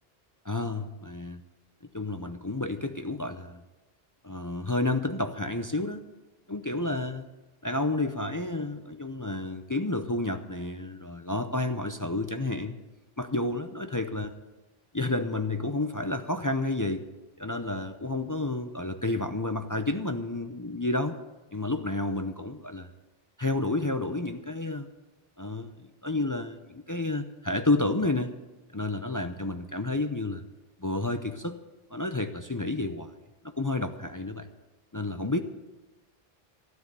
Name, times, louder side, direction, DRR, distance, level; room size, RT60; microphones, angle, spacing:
voice 1, 0.4-1.4 1.9-3.6 4.2-6.0 6.5-7.2 7.6-12.8 13.2-14.3 14.9-17.0 17.4-21.1 21.5-22.9 23.4-24.9 25.4-28.3 28.7-30.4 30.8-31.6 31.9-33.1 33.6-34.5 34.9-35.4, left 2 dB, 25° left, 7 dB, 0.6 m, -30 dB
13.0 x 12.0 x 6.8 m, 1.1 s
omnidirectional pair, 1.0 m